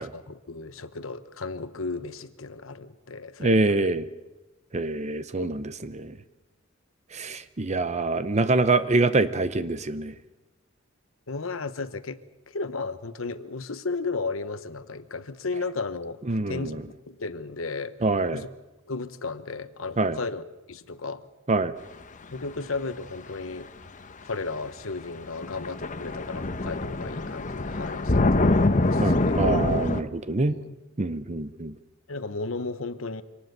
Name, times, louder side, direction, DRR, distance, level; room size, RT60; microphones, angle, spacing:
voice 1, 0.0-3.9 5.4-5.6 11.3-12.2 12.5-16.2 16.5-17.9 18.3-18.5 18.9-20.4 20.7-21.2 22.3-23.7 24.2-29.4 30.5-30.8 32.1-33.2, left 3 dB, 75° left, 13 dB, 1.1 m, -34 dB
voice 2, 3.4-4.1 4.7-6.2 7.1-10.1 16.3-16.8 18.0-18.4 20.0-20.2 21.5-21.7 29.0-30.6 31.0-31.7, right 3 dB, 35° right, 13 dB, 0.7 m, -25 dB
sound 1, 23.9-24.0 25.1-25.2 25.4-30.0, left 2 dB, 40° left, 1.0 m, -24 dB
25.0 x 19.0 x 6.7 m, 1.1 s
head